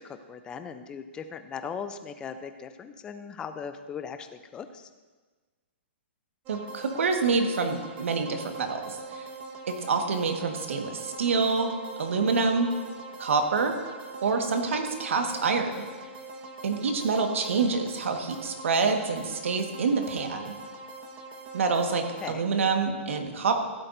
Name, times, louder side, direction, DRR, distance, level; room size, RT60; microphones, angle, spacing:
voice 1, 0.0-4.9 22.2-22.5, left 6 dB, 15° left, 9 dB, 0.5 m, -39 dB
sound 1, 6.5-22.3, right 2 dB, 20° right, 1.0 m, -42 dB
voice 2, 6.5-9.2 9.7-11.7 12.0-12.7 13.2-13.7 14.2-15.8 16.6-20.5 21.5-23.6, right 4 dB, 85° right, 4 dB, 1.6 m, -27 dB
15.5 x 12.5 x 2.7 m, 1.4 s
hypercardioid pair, 160°, 7 cm